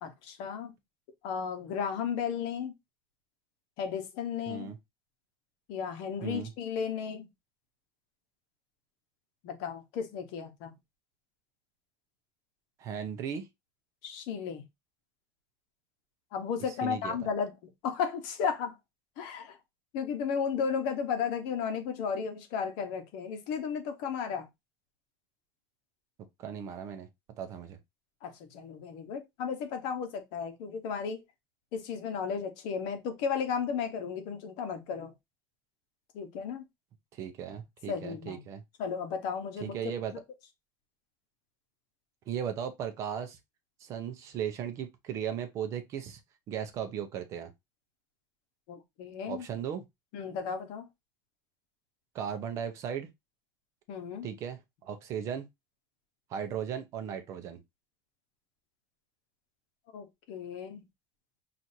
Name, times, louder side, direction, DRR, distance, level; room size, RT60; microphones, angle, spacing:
voice 1, 0.0-0.7 1.2-2.7 3.8-4.7 5.7-7.3 9.4-10.7 14.0-14.6 16.3-17.5 17.8-18.7 19.2-19.6 19.9-24.5 28.2-31.2 31.7-35.1 36.1-36.6 37.9-38.4 38.8-39.8 48.7-49.5 50.1-50.9 53.9-54.3 59.9-60.8, left 6 dB, 50° left, 1.0 m, -34 dB
voice 2, 4.5-4.8 6.2-6.5 12.8-13.5 16.8-17.2 26.4-27.1 27.4-27.8 37.1-38.6 39.6-40.1 42.3-43.4 43.8-46.2 46.5-47.5 49.3-49.8 52.1-53.1 54.2-55.5 56.3-57.6, right 8 dB, 30° right, 0.6 m, -36 dB
6.0 x 2.5 x 2.6 m
cardioid pair, 180°, 10 cm